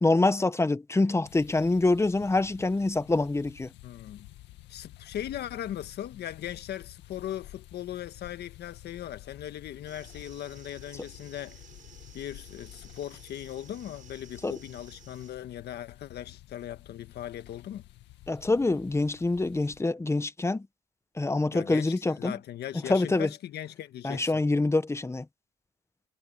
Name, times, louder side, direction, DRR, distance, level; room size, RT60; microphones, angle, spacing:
voice 1, 0.0-3.7 14.4-14.5 18.3-20.6 21.2-22.4 22.9-23.3 24.0-25.2, left 2 dB, 15° left, 1.2 m, -25 dB
sound 1, 1.2-19.8, left 15 dB, 85° left, 1.9 m, -51 dB
voice 2, 3.8-4.3 4.7-11.6 12.1-17.8 21.5-24.4, left 11 dB, 70° left, 1.5 m, -39 dB
sound 2, 9.9-15.3, right 7 dB, 50° right, 7.6 m, -55 dB
cardioid pair, 90°, 18 cm